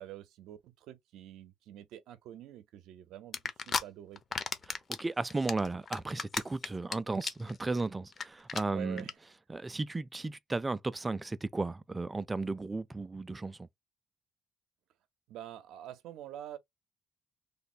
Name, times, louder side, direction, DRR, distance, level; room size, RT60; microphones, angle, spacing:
voice 1, 0.0-3.4 3.7-4.2 8.7-9.1 15.3-16.6, right 12 dB, 90° right, 0.6 m, -46 dB
sound 1, 3.3-3.8 4.2-5.0 5.3-6.9 7.2-7.5 7.8-7.9 8.1-8.2 8.5-8.6 9.0-9.1, left 5 dB, 50° left, 0.7 m, -33 dB
voice 2, 4.7-9.0 9.5-13.7, right 3 dB, 20° right, 0.4 m, -35 dB
3.3 x 2.1 x 4.2 m
cardioid pair, 90°, 0 cm